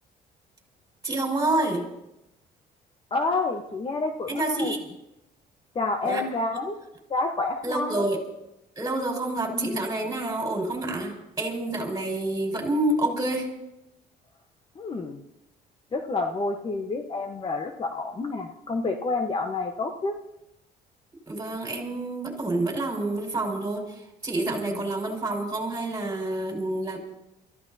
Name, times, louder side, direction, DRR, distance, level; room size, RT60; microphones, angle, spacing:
voice 1, 1.0-1.9 4.3-4.8 6.0-6.3 7.6-8.2 8.8-13.5 21.3-23.8 24.2-27.0, right 2 dB, 20° right, 0 dB, 5.3 m, -28 dB
voice 2, 3.1-4.7 5.7-6.8 7.1-8.1 9.5-9.8 14.8-15.2 15.9-20.1 24.5-24.8, left 3 dB, 30° left, 4 dB, 1.1 m, -29 dB
28.5 x 15.0 x 2.8 m, 0.90 s
cardioid pair, 110°, 17 cm